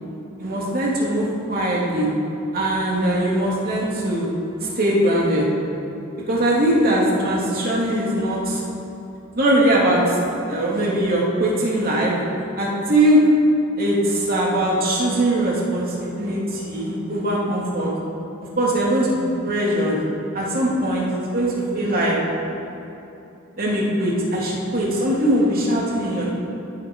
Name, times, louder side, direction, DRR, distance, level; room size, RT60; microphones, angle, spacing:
voice 1, 0.4-2.1 2.5-4.3 4.6-5.5 6.3-8.6 9.4-10.2 10.4-12.1 12.6-13.2 13.8-17.9 18.6-20.0 20.3-21.1 21.3-22.2 23.6-26.3, right 1 dB, 45° right, -5 dB, 3.4 m, -21 dB
21.5 x 9.9 x 5.0 m, 3.0 s
head